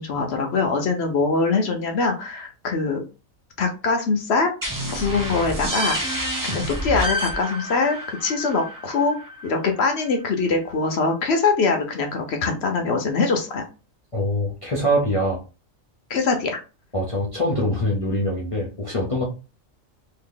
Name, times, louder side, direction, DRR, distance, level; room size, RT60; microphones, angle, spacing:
voice 1, 0.0-3.0 3.6-4.5 4.9-6.0 6.4-9.2 9.4-13.6 16.1-16.6, left 4 dB, 60° left, 4 dB, 0.9 m, -23 dB
sound 1, 4.6-10.1, equal, 20° right, 0.5 m, -29 dB
voice 2, 14.1-15.4 16.9-19.2, equal, 30° left, -3 dB, 0.6 m, -23 dB
2.8 x 2.7 x 3.7 m, 0.31 s
omnidirectional pair, 1.4 m